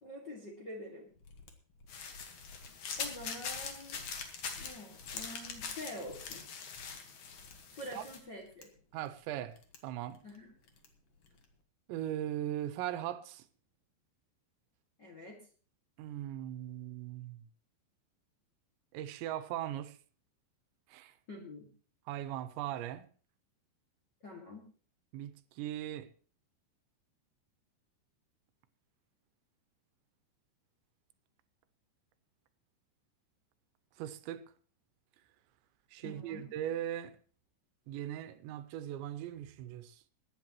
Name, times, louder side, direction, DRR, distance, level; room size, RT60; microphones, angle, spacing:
voice 1, 0.0-1.1 3.0-4.0 4.5-6.4 7.7-8.7 10.2-10.5 15.0-15.4 21.3-21.7 24.2-24.7 36.0-36.5, left 1 dB, 40° left, 1.6 m, -46 dB
Mechanisms, 1.1-11.6, left 3 dB, 80° left, 1.3 m, -57 dB
sound 1, 1.9-8.2, left 6 dB, 55° left, 2.3 m, -43 dB
voice 2, 8.9-9.6 9.8-10.2 11.9-13.4 16.0-17.4 18.9-20.0 20.9-21.1 22.1-23.1 25.1-26.1 34.0-34.5 35.9-37.2 37.9-40.0, right 12 dB, 85° right, 3.0 m, -39 dB
22.5 x 10.5 x 3.0 m
omnidirectional pair, 5.2 m